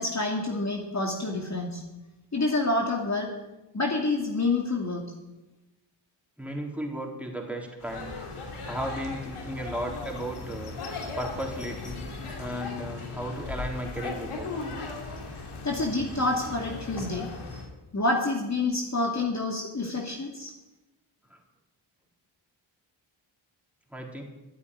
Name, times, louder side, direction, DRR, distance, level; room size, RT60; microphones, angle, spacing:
voice 1, 0.0-1.8 2.3-3.3 3.7-5.1 15.4-17.3 17.9-20.5, left 2 dB, 35° left, 0 dB, 2.5 m, -28 dB
voice 2, 6.4-8.1 8.7-10.7 11.2-12.0 12.4-14.5 21.3-21.4 23.9-24.2, right 1 dB, 5° right, -1 dB, 4.3 m, -35 dB
sound 1, 7.8-17.7, left 3 dB, 85° left, 3.1 m, -37 dB
13.5 x 8.4 x 9.8 m, 1.0 s
cardioid pair, 50°, 50 cm